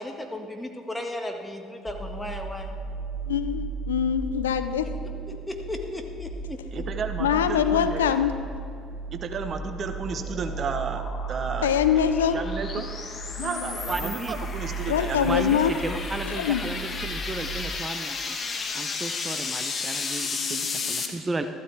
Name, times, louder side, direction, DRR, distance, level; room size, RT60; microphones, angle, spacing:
voice 1, 0.0-2.7 5.3-6.6, left 1 dB, 10° left, 3 dB, 1.7 m, -35 dB
sound 1, 1.9-17.8, right 4 dB, 5° right, 1.2 m, -35 dB
voice 2, 3.3-4.9 7.2-8.3 11.6-12.4 13.4-13.7 14.9-15.7 16.2-16.6 20.4-21.1, left 9 dB, 85° left, 11 dB, 0.4 m, -24 dB
voice 3, 6.7-8.2 9.1-11.7 12.3-12.9 13.3-15.4, right 5 dB, 45° right, 7 dB, 1.0 m, -33 dB
sound 2, 9.6-21.1, left 4 dB, 40° left, 1.3 m, -34 dB
voice 4, 13.9-14.3 15.2-18.4 18.7-21.5, right 3 dB, 25° right, 8 dB, 0.7 m, -34 dB
14.0 x 12.5 x 3.4 m, 2.5 s
hypercardioid pair, 60°, 0 cm